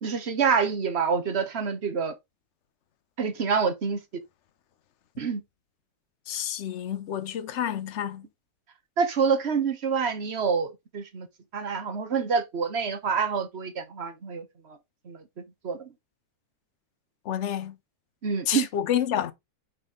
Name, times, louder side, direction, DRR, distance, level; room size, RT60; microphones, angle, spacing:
voice 1, 0.0-2.1 3.2-4.0 5.2-5.4 9.0-11.3 11.5-14.5 15.1-15.2 15.6-15.8 18.2-18.7, right 6 dB, 45° right, 1.2 m, -27 dB
voice 2, 6.3-8.2 17.3-17.7 18.5-19.3, left 10 dB, 55° left, 1.0 m, -29 dB
5.5 x 5.4 x 3.8 m
omnidirectional pair, 1.7 m